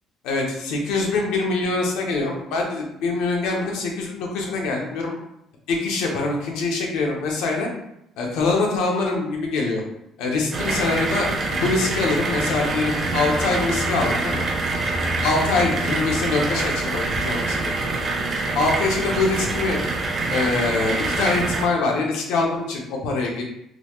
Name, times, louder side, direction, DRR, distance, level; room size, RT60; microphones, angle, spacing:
voice 1, 0.2-5.1 5.7-7.7 8.2-9.8 10.2-14.4 15.2-17.7 18.5-19.8 20.3-23.4, left 3 dB, 90° left, 0 dB, 0.8 m, -24 dB
sound 1, 10.5-21.7, right 2 dB, 30° right, 0.5 m, -25 dB
3.8 x 2.3 x 3.1 m, 0.80 s
cardioid pair, 160°, 0 cm